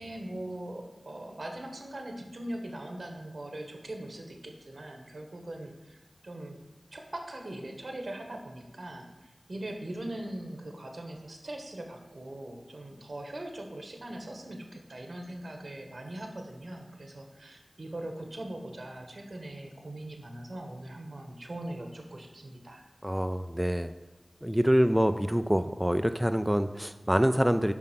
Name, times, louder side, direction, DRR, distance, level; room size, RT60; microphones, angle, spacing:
voice 1, 0.0-6.6 6.9-22.8, right 1 dB, 75° right, 4 dB, 1.3 m, -41 dB
voice 2, 23.0-23.9 24.4-27.7, equal, 10° right, 8 dB, 0.4 m, -26 dB
7.4 x 5.3 x 5.9 m, 1.1 s
wide cardioid pair, 45°, 0 cm